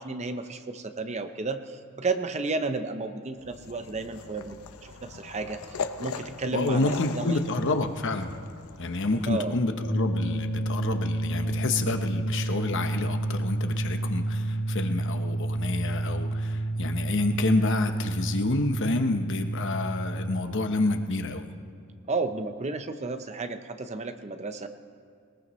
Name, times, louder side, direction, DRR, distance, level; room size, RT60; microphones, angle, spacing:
voice 1, 0.0-4.6 4.8-7.4 9.3-9.6 22.1-24.7, right 3 dB, 30° right, 8 dB, 0.7 m, -32 dB
sound 1, 3.4-9.4, left 5 dB, 85° left, 0.7 m, -40 dB
voice 2, 6.5-8.4 8.8-21.5, left 2 dB, 60° left, 7 dB, 0.9 m, -28 dB
sound 2, 9.8-20.4, right 2 dB, 35° left, 2.8 m, -30 dB
21.0 x 19.5 x 3.2 m, 2.2 s
head